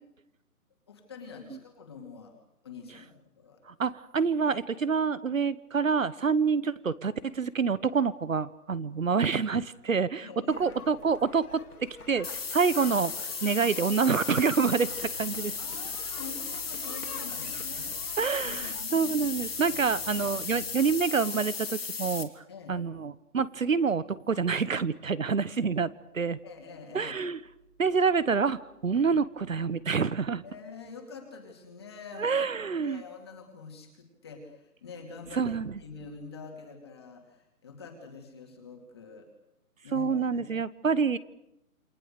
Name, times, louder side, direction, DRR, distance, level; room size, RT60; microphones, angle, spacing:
voice 1, 0.9-2.3 2.6-3.6 10.2-10.9 15.6-20.3 22.5-22.8 26.4-27.1 30.4-35.4 35.8-39.3 39.8-40.4, left 5 dB, 15° left, 2 dB, 2.5 m, -46 dB
voice 2, 3.7-10.3 10.6-15.5 18.2-22.4 22.7-26.4 26.9-27.4 27.8-30.4 32.2-33.0 35.3-35.7 39.9-41.2, right 5 dB, 60° right, 18 dB, 1.2 m, -27 dB
sound 1, 10.5-18.8, left 4 dB, 75° left, 2.9 m, -49 dB
sound 2, 12.2-22.2, left 5 dB, 40° left, 2.4 m, -35 dB
sound 3, 14.6-20.9, right 3 dB, 85° right, 4.3 m, -52 dB
28.5 x 24.5 x 6.7 m, 0.84 s
hypercardioid pair, 180°, 45 cm